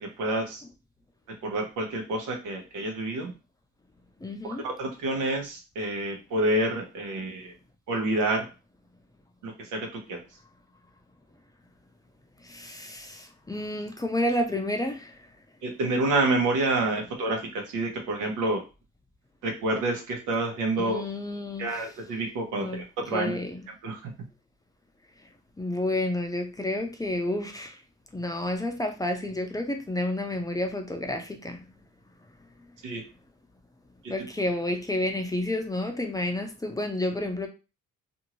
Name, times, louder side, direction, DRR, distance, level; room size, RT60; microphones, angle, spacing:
voice 1, 0.0-0.6 1.4-3.3 4.4-7.5 7.9-8.4 9.4-10.2 15.6-18.6 19.4-21.0 21.6-23.4 23.8-24.1 32.8-33.0 34.0-34.1, right 2 dB, 90° right, 1.0 m, -28 dB
voice 2, 4.2-4.6 12.4-15.3 20.8-21.7 22.6-22.8 23.1-23.7 25.6-27.8 28.1-31.7 34.1-37.5, left 1 dB, 10° left, 0.5 m, -30 dB
2.6 x 2.6 x 2.9 m
cardioid pair, 90°, 30 cm